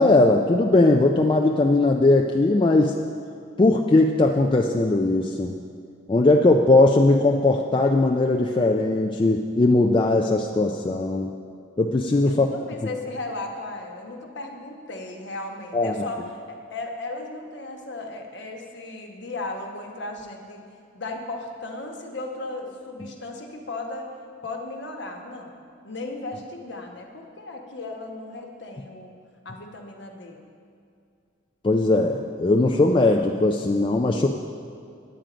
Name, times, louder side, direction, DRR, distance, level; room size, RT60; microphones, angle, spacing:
voice 1, 0.0-2.9 3.6-5.6 6.1-11.3 11.8-12.5 15.7-16.1 31.6-34.3, left 2 dB, 25° left, 1 dB, 0.3 m, -19 dB
voice 2, 12.2-20.6 20.9-24.1 24.4-29.1 29.4-30.4, left 2 dB, 60° left, 2 dB, 1.1 m, -36 dB
9.1 x 9.0 x 5.0 m, 2.4 s
head